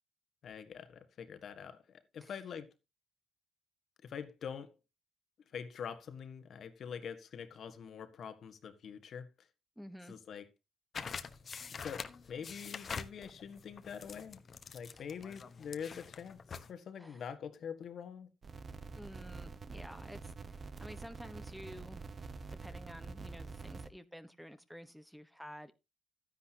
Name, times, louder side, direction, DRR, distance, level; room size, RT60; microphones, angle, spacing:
voice 1, 0.4-2.7 4.0-4.8 5.5-9.5 10.1-10.4 11.8-14.4 14.7-18.3, left 7 dB, 60° left, 1.6 m, -45 dB
voice 2, 9.8-10.1 14.9-15.0 17.0-17.2 18.9-22.0 22.5-25.7, equal, ahead, 1.2 m, -51 dB
sound 1, 10.9-16.7, left 5 dB, 45° left, 1.1 m, -45 dB
sound 2, 18.4-23.9, right 4 dB, 35° right, 1.1 m, -47 dB
12.5 x 10.0 x 2.9 m
cardioid pair, 90°, 0 cm